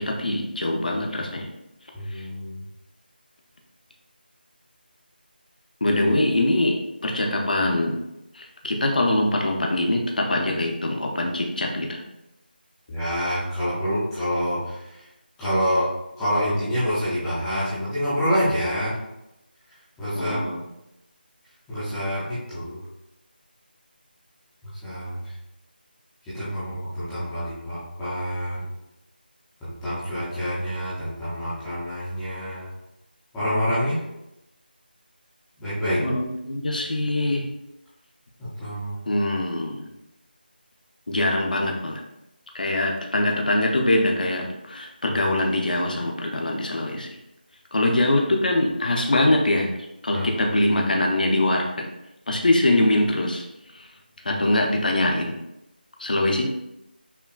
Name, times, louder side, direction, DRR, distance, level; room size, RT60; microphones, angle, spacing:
voice 1, 0.0-1.5 2.1-2.2 5.8-6.8 7.0-8.0 8.3-12.0 20.1-20.6 36.0-37.4 39.1-39.9 41.1-42.0 42.5-47.1 47.7-49.7 50.0-51.9 52.3-53.4 53.7-53.9 54.2-55.4 56.0-56.4, left 1 dB, 55° left, 1 dB, 0.6 m, -23 dB
voice 2, 1.9-2.6 12.9-14.9 15.4-15.9 16.2-19.0 20.0-20.4 21.7-22.8 24.8-25.3 26.3-28.7 29.6-32.7 33.3-34.0 35.6-36.0 38.4-39.0 45.1-45.2 50.1-50.2 54.3-54.4, equal, 5° left, -13 dB, 0.4 m, -27 dB
5.5 x 2.2 x 2.3 m, 0.89 s
figure-of-eight pair, 175°, 6 cm